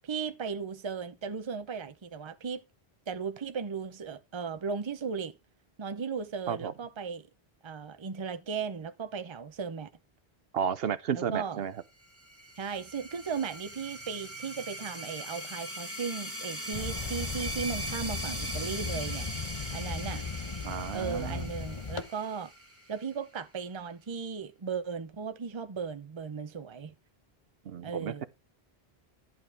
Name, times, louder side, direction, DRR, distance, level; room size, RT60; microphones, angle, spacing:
voice 1, 0.0-2.6 3.1-5.3 5.8-7.3 7.6-9.9 11.1-11.6 12.6-19.3 19.7-20.2 20.9-22.5 22.9-26.9 27.8-28.2, right 6 dB, 30° right, 0.7 m, -36 dB
voice 2, 10.5-11.7 20.6-21.5 27.7-28.3, right 8 dB, 70° right, 0.9 m, -32 dB
sound 1, 12.0-23.3, right 1 dB, 15° right, 2.5 m, -40 dB
sound 2, 16.7-22.0, left 5 dB, 30° left, 0.9 m, -37 dB
11.0 x 7.1 x 3.5 m
omnidirectional pair, 1.0 m